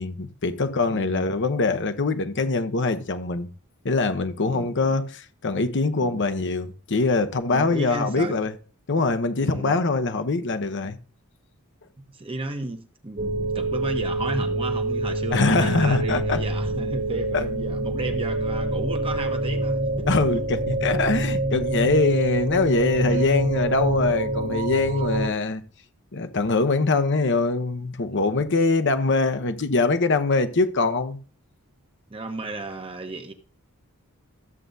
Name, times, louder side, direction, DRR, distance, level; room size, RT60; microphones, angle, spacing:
voice 1, 0.0-3.5 3.8-8.5 8.9-11.0 15.3-16.4 17.3-17.4 20.0-25.6 26.1-31.2, left 3 dB, 55° left, 0.9 m, -23 dB
voice 2, 0.8-1.3 4.4-5.0 6.0-6.2 7.5-8.4 9.0-9.1 9.4-9.8 12.0-20.2 23.0-23.3 28.1-28.2 32.1-33.3, right 2 dB, 25° right, 1.0 m, -34 dB
sound 1, 13.2-25.3, right 2 dB, 40° right, 1.7 m, -26 dB
13.5 x 7.5 x 2.7 m
head